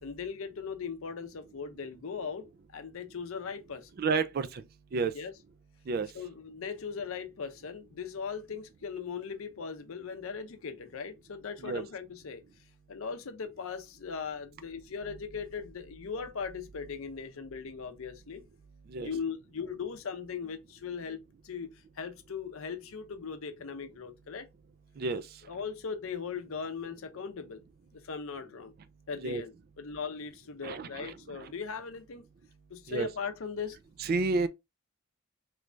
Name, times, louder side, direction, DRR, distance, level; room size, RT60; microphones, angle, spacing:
voice 1, 0.0-2.5 2.7-3.9 5.1-5.3 6.1-12.4 12.9-18.4 19.0-24.5 25.5-27.6 27.9-28.7 29.1-32.2 32.7-33.8, left 6 dB, 70° left, 0.5 m, -39 dB
voice 2, 4.0-4.6 4.9-5.1 5.9-6.1 11.6-11.8 18.9-19.1 25.0-25.3 29.2-29.4 30.6-31.5 32.9-33.1 34.0-34.5, right 4 dB, 45° right, 0.3 m, -31 dB
3.3 x 3.1 x 2.5 m
head